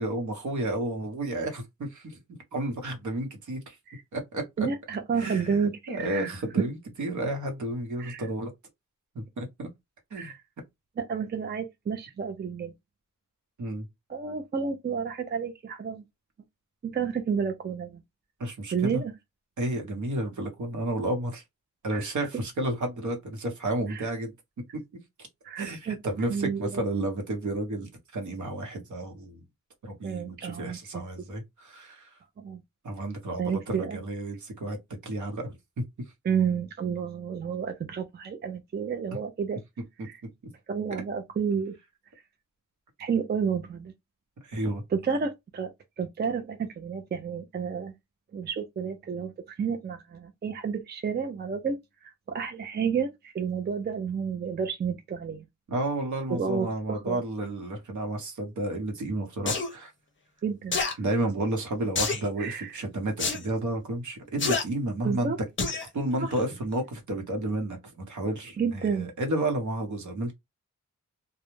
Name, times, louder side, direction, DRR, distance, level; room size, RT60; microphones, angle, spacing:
voice 1, 0.0-2.2 2.5-3.8 4.1-4.7 5.2-8.5 9.1-9.7 10.1-10.3 13.6-13.9 18.4-19.0 19.6-21.4 21.8-24.3 24.7-24.8 25.6-29.4 29.8-32.1 32.8-34.8 35.0-35.8 40.0-40.1 44.4-44.8 55.7-59.9 61.0-65.3 65.9-70.3, right 1 dB, 65° right, 0.9 m, -31 dB
voice 2, 4.6-6.4 8.0-8.3 10.2-10.4 11.0-12.7 14.1-16.0 16.8-18.0 18.7-19.1 21.9-22.3 23.9-24.1 25.4-26.0 26.3-26.8 30.0-31.0 32.4-32.6 33.4-34.0 36.2-39.6 40.0-40.2 40.7-41.8 43.0-43.9 44.9-45.7 46.0-47.9 48.3-55.4 56.3-57.2 60.4-60.8 62.4-62.8 65.0-65.4 66.2-66.3 68.6-69.1, right 6 dB, 35° right, 0.4 m, -31 dB
sound 1, 59.5-59.7 60.7-60.9 62.0-62.3 63.2-63.4 64.4-64.6 65.6-65.9 66.3-66.4, left 4 dB, 40° left, 0.6 m, -27 dB
2.3 x 2.1 x 3.0 m
wide cardioid pair, 140°, 32 cm